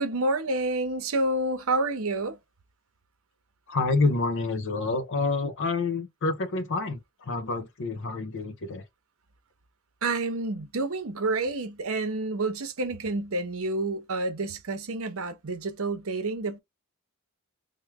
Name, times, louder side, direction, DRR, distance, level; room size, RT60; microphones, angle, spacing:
voice 1, 0.0-2.4 10.0-16.6, right 2 dB, 65° right, 0.8 m, -29 dB
voice 2, 3.7-7.0 7.3-8.8, left 3 dB, 60° left, 0.6 m, -28 dB
3.1 x 2.2 x 3.5 m
head